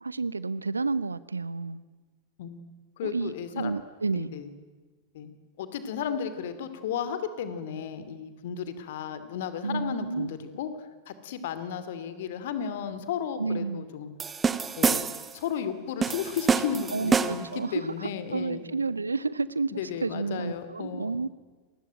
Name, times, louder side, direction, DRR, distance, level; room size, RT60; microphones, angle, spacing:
voice 1, 0.0-1.8 3.0-4.3 9.6-10.3 13.4-13.9 16.9-21.3, right 4 dB, 80° right, 19 dB, 0.9 m, -31 dB
voice 2, 3.0-3.7 4.1-4.5 5.1-5.3 5.6-14.1 14.8-15.0 15.3-18.6 19.7-21.3, left 8 dB, 55° left, 12 dB, 2.6 m, -34 dB
sound 1, 14.2-15.4 16.0-17.6, right 5 dB, 20° right, 1.2 m, -26 dB
28.0 x 20.0 x 9.0 m, 1.4 s
figure-of-eight pair, 90°, 0 cm